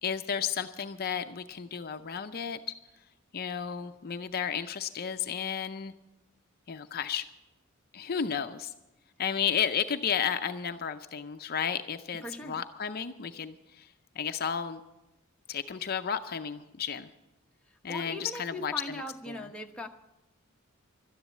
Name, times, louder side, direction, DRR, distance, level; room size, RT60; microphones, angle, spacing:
voice 1, 0.0-2.6 3.3-5.9 6.7-7.2 7.9-8.7 9.2-13.9 14.2-14.8 15.5-17.1 17.8-19.0 19.3-19.5, left 7 dB, 45° left, 9 dB, 0.5 m, -33 dB
voice 2, 12.2-12.6 17.9-19.9, left 1 dB, 5° left, 1 dB, 1.0 m, -39 dB
12.5 x 10.5 x 8.2 m, 1.0 s
head